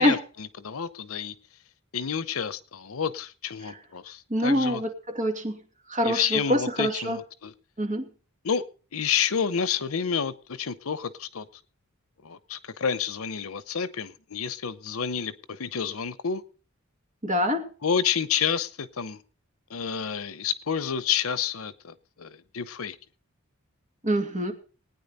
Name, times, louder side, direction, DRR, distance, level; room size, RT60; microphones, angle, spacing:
voice 1, 0.0-1.3 1.9-4.8 6.0-7.5 8.4-8.6 8.9-11.5 12.2-16.4 17.8-19.2 19.7-23.0, left 7 dB, 85° left, 0.8 m, -29 dB
voice 2, 4.3-4.9 5.1-5.6 5.9-7.2 7.8-8.1 17.2-17.6 24.0-24.5, equal, 35° right, 2.5 m, -25 dB
20.0 x 9.5 x 4.1 m
head